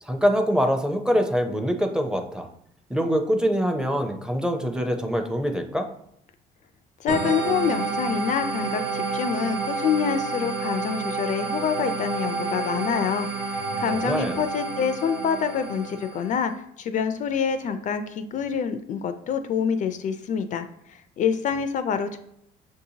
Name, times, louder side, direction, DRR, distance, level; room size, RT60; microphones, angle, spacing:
voice 1, 0.0-2.5 2.9-5.9 13.7-14.4, equal, 5° right, 4 dB, 0.5 m, -24 dB
voice 2, 7.0-16.5 16.8-22.2, left 7 dB, 50° left, 9 dB, 0.4 m, -26 dB
sound 1, 7.1-16.4, right 4 dB, 90° right, 1.1 m, -30 dB
6.4 x 2.7 x 2.8 m, 0.74 s
cardioid pair, 110°, 17 cm